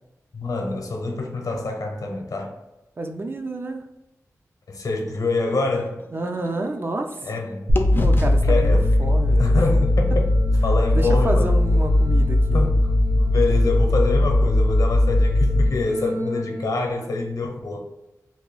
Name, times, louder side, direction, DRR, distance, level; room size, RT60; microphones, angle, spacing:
voice 1, 0.3-2.5 4.7-6.0 7.2-8.0 8.4-8.9 9.4-10.3 10.6-11.5 12.5-12.8 13.2-17.8, left 3 dB, 75° left, 2 dB, 0.7 m, -26 dB
voice 2, 3.0-3.8 6.1-7.2 7.9-9.6 10.9-12.6, right 2 dB, 40° right, 5 dB, 0.4 m, -29 dB
sound 1, 5.1-7.4 7.8-11.7, left 1 dB, 35° left, 0.4 m, -33 dB
sound 2, 7.7-16.7, left 1 dB, 75° right, 0.8 m, -19 dB
2.9 x 2.3 x 3.8 m, 0.96 s
wide cardioid pair, 105°, 6 cm